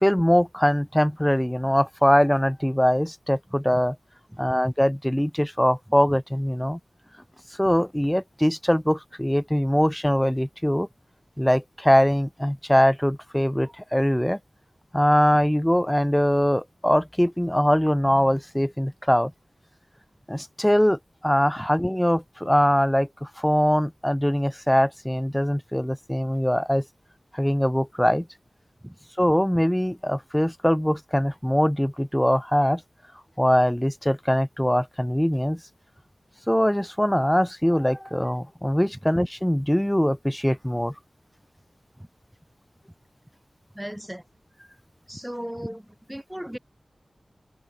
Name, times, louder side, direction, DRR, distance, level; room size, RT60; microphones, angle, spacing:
voice 1, 0.0-4.0 4.4-6.8 7.6-10.9 11.4-14.4 14.9-19.3 20.3-26.8 27.3-28.3 29.2-32.8 33.4-35.6 36.5-40.9, equal, 10° left, 0.5 m, -22 dB
voice 2, 43.7-44.2 45.1-46.6, equal, 10° right, 1.4 m, -36 dB
cardioid pair, 45°, 0 cm